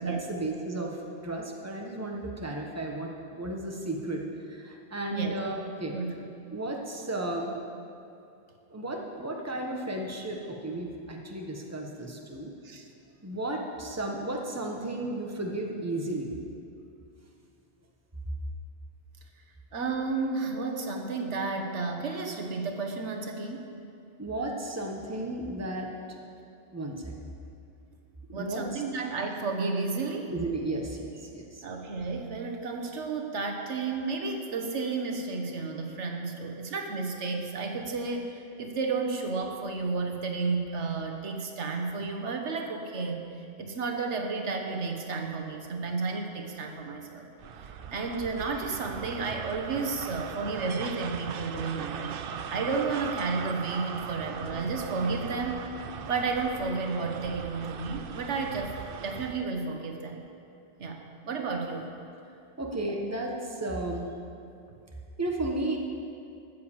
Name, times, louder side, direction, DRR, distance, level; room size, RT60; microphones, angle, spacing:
voice 1, 0.0-4.2 4.5-6.0 6.5-7.6 8.7-12.5 13.2-16.4 24.2-26.2 26.7-27.1 28.3-28.8 30.3-31.6 62.6-64.1 65.2-65.8, right 1 dB, 15° right, 0 dB, 1.3 m, -34 dB
voice 2, 19.7-23.7 28.3-30.3 31.6-43.3 43.6-47.3 47.6-52.2 52.5-55.7 56.1-60.2 60.8-61.9, right 4 dB, 80° right, 3 dB, 1.4 m, -32 dB
sound 1, 47.4-59.5, right 7 dB, 60° right, 0.7 m, -39 dB
13.0 x 7.7 x 7.2 m, 2.6 s
omnidirectional pair, 1.2 m